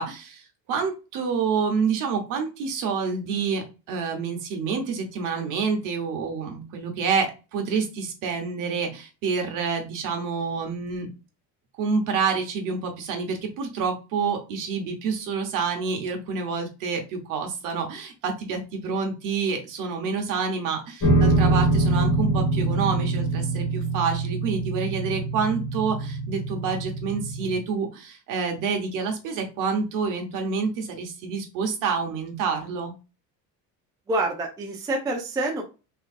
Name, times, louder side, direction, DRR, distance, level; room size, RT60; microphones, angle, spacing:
voice 1, 0.0-11.1 11.8-32.9, right 5 dB, 55° right, 3 dB, 1.2 m, -28 dB
sound 1, 21.0-27.6, right 2 dB, 60° left, 2.0 m, -24 dB
voice 2, 34.1-35.6, right 2 dB, 10° right, 0 dB, 0.4 m, -27 dB
3.7 x 3.0 x 2.4 m, 0.31 s
cardioid pair, 175°, 37 cm